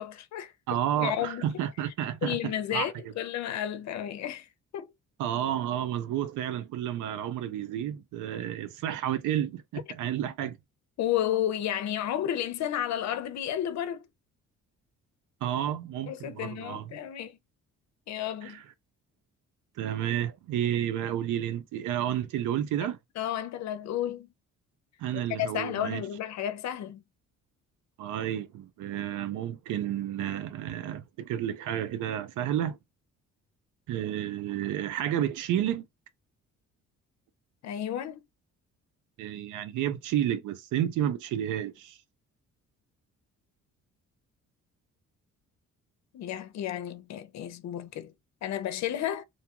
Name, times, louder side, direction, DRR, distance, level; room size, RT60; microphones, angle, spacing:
voice 1, 0.0-0.5 0.9-1.5 2.2-4.5 4.7-4.9 11.0-14.1 16.1-17.4 18.1-18.6 23.2-24.3 25.1-27.0 37.6-38.2 46.1-48.1 48.4-49.2, left 11 dB, 65° left, 0.6 m, -32 dB
voice 2, 0.7-2.9 5.2-10.6 15.4-17.0 18.4-18.6 19.8-23.0 25.0-26.0 28.0-32.8 33.9-35.9 39.2-42.0, right 11 dB, 85° right, 0.6 m, -31 dB
2.7 x 2.2 x 2.9 m
cardioid pair, 90°, 30 cm